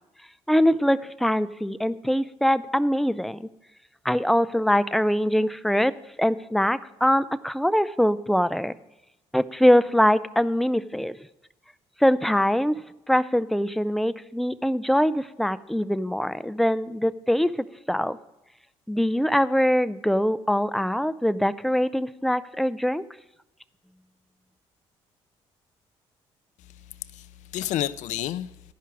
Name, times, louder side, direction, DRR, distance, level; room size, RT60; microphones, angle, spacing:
voice 1, 0.5-3.5 4.0-5.9 6.2-8.7 9.3-11.2 12.0-12.8 13.1-17.5 17.9-18.2 18.9-23.0, equal, ahead, 0.4 m, -23 dB
voice 2, 26.6-28.7, left 13 dB, 70° left, 0.4 m, -31 dB
10.5 x 5.6 x 6.1 m
supercardioid pair, 60°, 13 cm